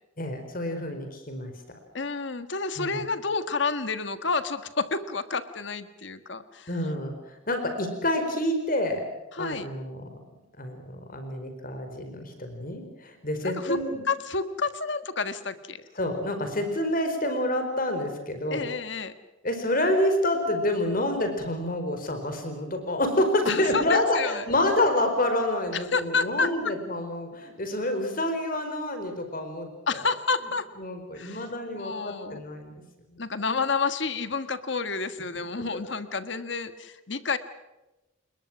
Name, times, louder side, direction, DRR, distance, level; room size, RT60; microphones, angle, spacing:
voice 1, 0.2-1.5 2.8-3.0 6.7-9.0 9.4-10.2 10.6-13.9 15.9-18.7 19.4-30.0 30.8-32.7, left 1 dB, 45° left, 6 dB, 4.7 m, -28 dB
voice 2, 1.9-6.7 9.3-9.7 13.4-13.8 14.1-15.8 18.5-19.1 23.4-24.4 25.7-26.7 29.9-30.7 31.1-31.5 31.8-32.4 33.2-37.4, left 4 dB, 60° left, 11 dB, 1.6 m, -29 dB
29.5 x 21.5 x 6.2 m, 1.0 s
head